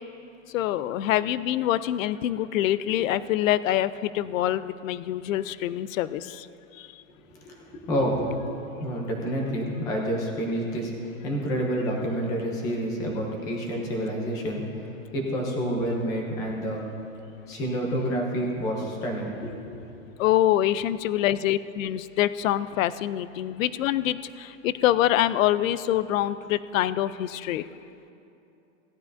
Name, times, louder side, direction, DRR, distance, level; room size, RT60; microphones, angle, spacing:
voice 1, 0.5-6.5 6.8-6.9 20.2-27.7, left 13 dB, 80° left, 15 dB, 0.5 m, -25 dB
voice 2, 7.4-8.3 8.8-14.6 15.1-16.9 17.5-19.5 19.9-20.0, equal, 10° left, 0 dB, 0.5 m, -28 dB
17.5 x 11.5 x 2.6 m, 2.8 s
supercardioid pair, 175°, 39 cm